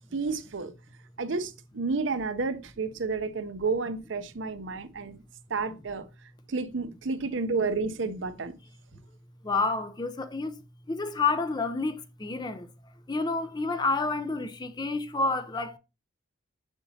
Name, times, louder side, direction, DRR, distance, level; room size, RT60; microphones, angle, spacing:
voice 1, 0.1-0.7 1.2-5.2 5.5-6.1 6.5-8.5, right 4 dB, 65° right, 0.6 m, -31 dB
voice 2, 9.4-10.6 10.9-12.7 13.1-15.8, left 3 dB, 20° left, 0.5 m, -29 dB
7.0 x 6.8 x 2.7 m
head